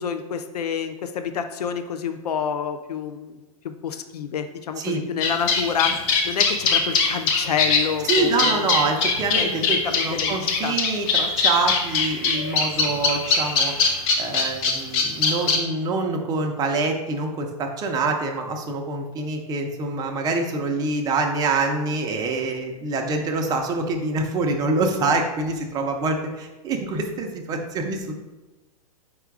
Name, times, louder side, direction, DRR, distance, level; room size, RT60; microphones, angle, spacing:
voice 1, 0.0-8.7 9.4-9.5 9.8-10.3 10.6-10.8, left 7 dB, 90° left, 8 dB, 0.4 m, -28 dB
sound 1, 5.2-15.6, left 5 dB, 45° left, 0.8 m, -21 dB
voice 2, 8.0-13.7 14.2-28.2, right 3 dB, 20° right, 3 dB, 0.5 m, -25 dB
4.9 x 2.3 x 4.6 m, 1.1 s
hypercardioid pair, 130°, 20 cm